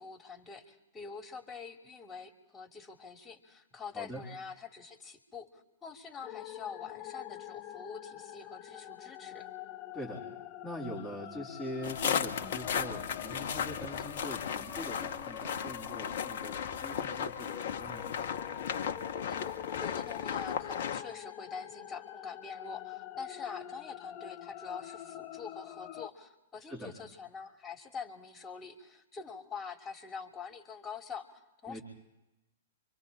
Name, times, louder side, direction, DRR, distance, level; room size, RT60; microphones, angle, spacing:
voice 1, 0.0-9.5 19.3-31.8, left 5 dB, 15° left, 4 dB, 3.1 m, -45 dB
sound 1, 6.2-26.1, left 12 dB, 35° left, 0.9 m, -46 dB
voice 2, 9.9-10.2 10.6-18.1 26.7-27.0 31.7-31.8, equal, 5° right, -3 dB, 4.0 m, -43 dB
sound 2, 11.8-21.0, left 7 dB, 60° left, 1.3 m, -35 dB
29.0 x 25.0 x 4.3 m, 0.94 s
hypercardioid pair, 110°, 0 cm